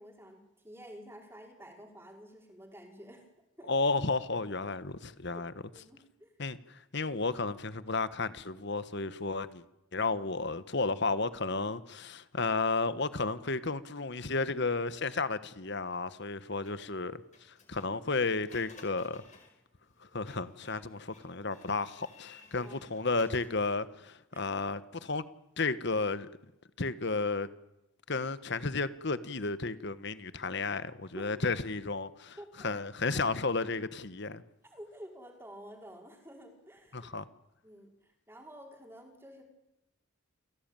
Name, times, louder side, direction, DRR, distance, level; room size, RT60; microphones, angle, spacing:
voice 1, 0.0-3.3 3.6-3.7 5.3-5.4 5.7-6.3 20.7-20.8 22.6-22.8 24.3-24.5 31.1-31.3 32.4-32.7 33.1-33.2 34.6-37.1 37.6-39.4, equal, 10° right, 5.1 m, -50 dB
voice 2, 3.7-5.5 6.4-9.6 9.9-19.2 20.0-25.2 25.6-26.3 26.8-27.5 28.1-32.4 32.6-34.4 36.9-37.3, left 3 dB, 55° left, 1.4 m, -33 dB
Printer, 16.6-23.9, left 4 dB, 35° left, 5.0 m, -58 dB
29.0 x 17.5 x 9.1 m
head